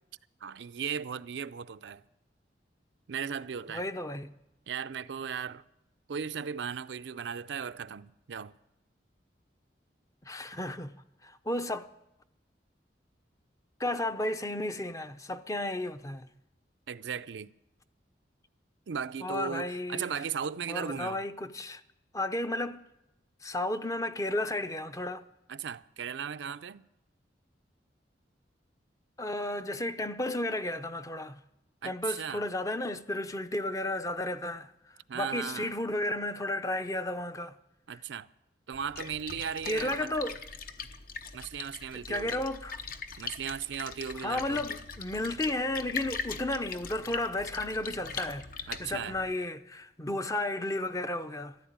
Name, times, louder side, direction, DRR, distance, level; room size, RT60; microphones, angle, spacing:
voice 1, 0.4-2.0 3.1-3.9 4.7-5.6 6.1-8.5 16.9-17.5 18.9-21.2 25.5-26.8 31.8-32.4 35.1-35.8 37.9-38.3 38.7-40.1 41.3-42.4 43.2-44.7 48.7-49.2, right 7 dB, 80° right, 0.5 m, -37 dB
voice 2, 3.7-4.3 10.2-10.9 11.2-11.9 13.8-16.3 19.2-20.1 20.7-21.8 22.1-22.9 23.4-25.3 29.2-31.4 31.8-34.7 35.1-37.5 39.6-40.4 41.9-42.8 44.2-51.6, left 1 dB, 20° left, 0.6 m, -33 dB
Splash splatter, 38.7-49.3, left 5 dB, 55° left, 0.8 m, -41 dB
13.5 x 12.0 x 8.8 m
head